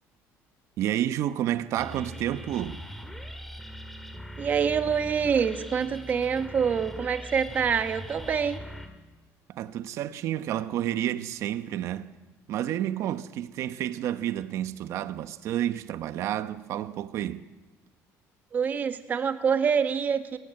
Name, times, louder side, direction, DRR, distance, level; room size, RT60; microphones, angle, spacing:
voice 1, 0.8-2.8 9.5-12.1 12.5-17.4, right 11 dB, 55° right, 1.0 m, -30 dB
sound 1, 1.8-8.9, equal, 5° left, 1.8 m, -41 dB
voice 2, 4.4-8.6 18.5-20.4, right 6 dB, 30° right, 1.2 m, -26 dB
21.5 x 17.5 x 9.0 m
cardioid pair, 175°, 6 cm